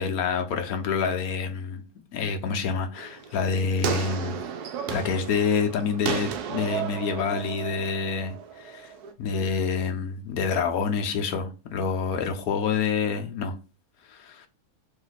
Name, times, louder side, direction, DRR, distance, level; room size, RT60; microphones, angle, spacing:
voice 1, 0.0-1.8 2.1-4.4 4.9-8.9 9.2-13.6 14.1-14.5, left 5 dB, 70° left, 1.2 m, -27 dB
sound 1, 3.0-9.1, right 7 dB, 85° right, 1.2 m, -33 dB
3.2 x 2.9 x 4.0 m
omnidirectional pair, 1.6 m